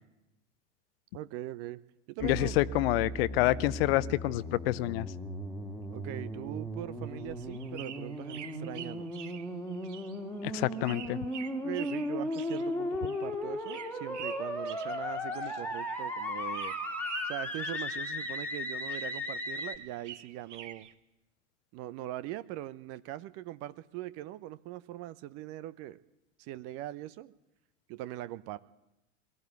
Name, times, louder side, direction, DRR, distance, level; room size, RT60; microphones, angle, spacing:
voice 1, 1.1-1.8 2.1-2.6 5.9-9.1 11.6-16.7 17.2-20.9 21.7-26.0 26.4-27.3 27.9-28.6, right 14 dB, 40° right, 16 dB, 0.8 m, -41 dB
voice 2, 2.2-5.1 10.4-11.2, left 17 dB, 50° left, 17 dB, 0.7 m, -28 dB
sound 1, 2.2-19.8, left 1 dB, 5° left, 2.2 m, -36 dB
sound 2, 7.0-16.1 16.3-18.6 18.9-20.9, right 10 dB, 65° right, 1.3 m, -47 dB
22.0 x 14.5 x 9.5 m, 0.94 s
figure-of-eight pair, 85°, 39 cm